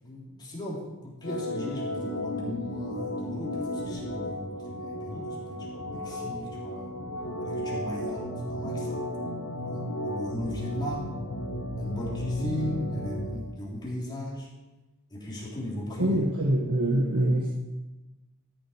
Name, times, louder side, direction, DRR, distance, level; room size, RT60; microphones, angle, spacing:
voice 1, 0.0-7.1 7.4-9.0 9.6-11.2 11.8-14.5 15.1-16.2, left 1 dB, 20° left, -5 dB, 3.4 m, -37 dB
Organ, 1.2-13.4, left 1 dB, 75° left, 1.6 m, -34 dB
voice 2, 16.0-17.5, right 1 dB, 75° right, -2 dB, 1.4 m, -24 dB
13.5 x 7.5 x 5.0 m, 1.1 s
head